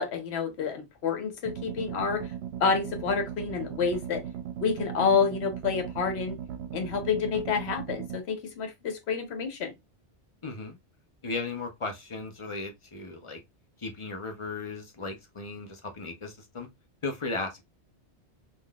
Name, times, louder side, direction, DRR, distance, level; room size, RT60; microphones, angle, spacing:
voice 1, 0.0-2.3 2.6-4.2 4.6-6.4 6.7-9.7, left 6 dB, 70° left, 1.1 m, -28 dB
sound 1, 1.4-8.2, right 9 dB, 75° right, 0.8 m, -38 dB
voice 2, 10.4-10.8 11.2-13.4 13.8-16.7 17.0-17.6, left 3 dB, 35° left, 0.5 m, -36 dB
3.6 x 2.4 x 2.3 m
omnidirectional pair, 1.1 m